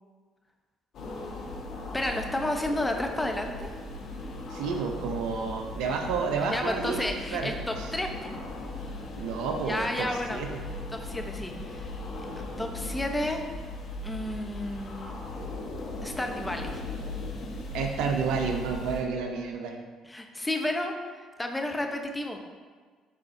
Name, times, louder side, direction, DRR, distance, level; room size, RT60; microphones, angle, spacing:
sound 1, 0.9-19.0, left 2 dB, 60° left, 1.2 m, -38 dB
voice 1, 1.9-3.7 6.5-8.3 9.7-10.4 10.9-11.9 12.6-13.4 14.0-15.1 16.0-16.8 20.0-22.4, left 1 dB, 15° left, 3 dB, 0.9 m, -31 dB
voice 2, 4.5-7.9 9.2-10.5 17.7-19.8, right 5 dB, 75° right, 3 dB, 0.8 m, -30 dB
11.0 x 4.2 x 2.8 m, 1.5 s
hypercardioid pair, 60°, 0 cm